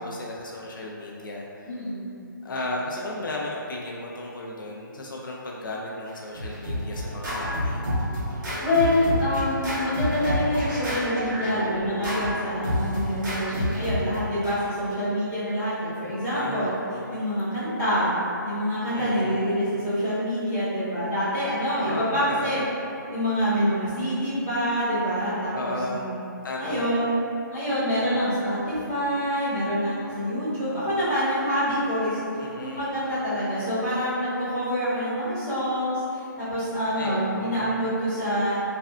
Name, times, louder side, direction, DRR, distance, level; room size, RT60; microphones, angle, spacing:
voice 1, 0.0-1.8 2.4-7.8 16.3-17.3 18.9-19.4 21.9-22.7 25.5-26.1 26.4-27.1 32.4-33.0 37.0-37.8, left 1 dB, 70° left, -2 dB, 0.4 m, -35 dB
voice 2, 1.6-2.1 8.3-16.7 17.1-18.1 18.4-22.6 23.1-25.5 25.9-26.2 26.6-27.1 27.5-38.6, equal, 10° left, -17 dB, 1.0 m, -26 dB
Scratching (performance technique), 6.1-14.5, equal, 60° right, 1.4 m, -29 dB
3.2 x 2.5 x 2.3 m, 2.7 s
hypercardioid pair, 175°, 11 cm